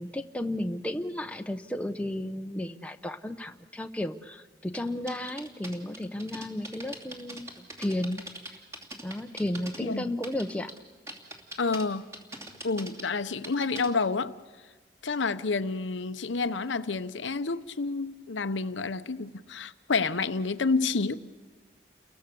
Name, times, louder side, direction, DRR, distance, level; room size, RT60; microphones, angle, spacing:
voice 1, 0.0-8.2 8.5-8.6 9.0-10.7, left 1 dB, 5° left, 0.8 m, -33 dB
sound 1, 4.7-9.8 10.1-10.8 11.1-11.8 12.1-13.9, right 1 dB, 15° right, 2.8 m, -42 dB
voice 2, 9.8-10.2 11.6-12.1 12.6-14.4 15.0-21.2, left 4 dB, 85° left, 0.8 m, -29 dB
30.0 x 22.5 x 6.9 m
head